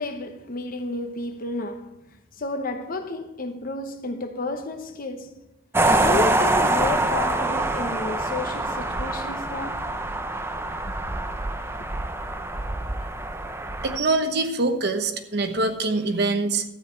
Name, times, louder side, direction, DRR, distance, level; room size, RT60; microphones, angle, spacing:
voice 1, 0.0-1.9 2.4-5.4 6.0-9.9 11.1-11.2 11.8-11.9, left 2 dB, 45° left, 1.0 m, -31 dB
sound 1, 5.7-14.0, right 2 dB, 10° right, 0.5 m, -25 dB
voice 2, 13.8-16.6, right 3 dB, 55° right, 1.1 m, -24 dB
12.5 x 8.9 x 4.6 m
head